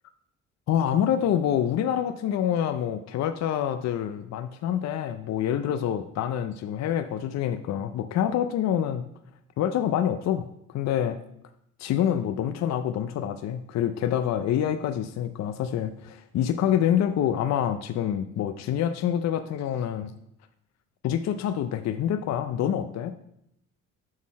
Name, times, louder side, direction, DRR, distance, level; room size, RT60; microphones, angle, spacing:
voice 1, 0.7-9.0 9.6-11.2 11.8-20.1 21.0-23.1, left 10 dB, 60° left, 9 dB, 0.5 m, -26 dB
6.3 x 3.7 x 6.1 m, 0.75 s
cardioid pair, 90°, 30 cm